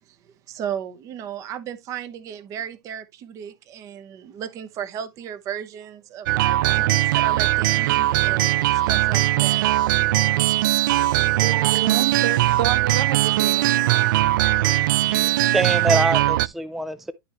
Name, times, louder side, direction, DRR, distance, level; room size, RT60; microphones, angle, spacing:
voice 1, 0.5-9.8, right 9 dB, 30° right, 0.9 m, -35 dB
sound 1, 6.3-16.5, right 16 dB, 65° right, 0.4 m, -20 dB
voice 2, 10.9-14.9, right 10 dB, 85° right, 1.5 m, -31 dB
voice 3, 14.6-17.1, right 2 dB, ahead, 0.4 m, -26 dB
11.5 x 4.7 x 2.9 m
supercardioid pair, 155°, 11 cm